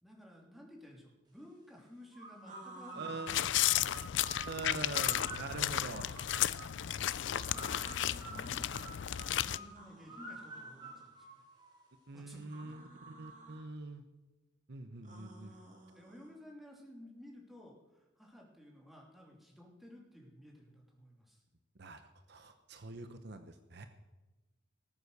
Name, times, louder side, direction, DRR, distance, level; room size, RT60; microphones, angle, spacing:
voice 1, 0.0-3.4 6.7-11.4 12.1-12.9 15.5-21.4, equal, ahead, -1 dB, 2.8 m, -55 dB
sound 1, 2.1-6.9 7.5-12.0, right 2 dB, 20° right, 3.7 m, -49 dB
sound 2, 2.4-3.8 5.0-6.2 7.3-8.3 9.7-11.1 12.4-13.6 15.0-16.3, right 2 dB, 40° right, 2.5 m, -53 dB
voice 2, 3.0-3.3 4.5-6.2 12.1-14.0 14.7-15.5 21.8-23.9, right 3 dB, 60° right, 8 dB, 0.9 m, -44 dB
sound 3, 3.3-9.6, left 12 dB, 65° left, 0.4 m, -33 dB
18.5 x 8.2 x 6.7 m, 1.1 s
head